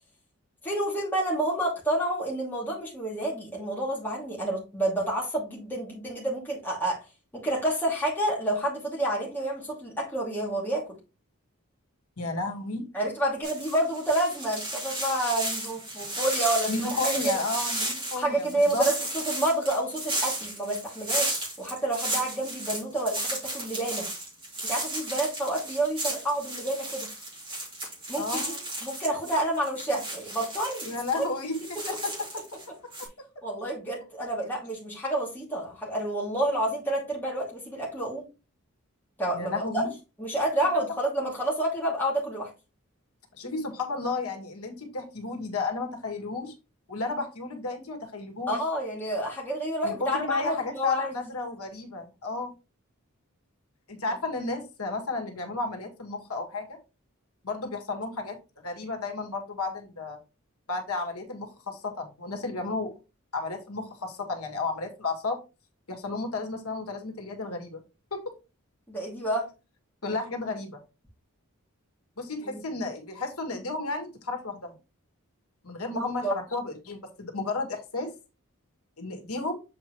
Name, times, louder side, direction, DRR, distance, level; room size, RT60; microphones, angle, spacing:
voice 1, 0.6-7.0 7.3-10.8 12.9-17.2 18.2-24.1 24.6-27.1 28.1-28.5 28.8-30.9 31.1-31.2 33.4-38.3 39.2-39.8 40.2-42.5 48.5-51.1 68.9-69.5 72.4-72.6 75.9-76.4, right 1 dB, 10° left, 2.5 m, -29 dB
voice 2, 12.2-12.8 16.7-18.9 28.2-28.6 30.8-32.1 33.2-33.3 39.3-39.9 43.4-46.5 46.9-48.6 49.8-52.5 53.9-56.8 57.4-58.4 58.6-60.2 60.7-63.0 63.3-65.4 65.9-67.8 68.1-68.2 70.0-70.8 72.2-74.7 75.6-78.1 79.0-79.6, left 3 dB, 85° left, 1.7 m, -32 dB
sound 1, 13.4-32.6 32.9-33.1, right 1 dB, 25° right, 2.9 m, -34 dB
7.4 x 4.5 x 3.1 m
head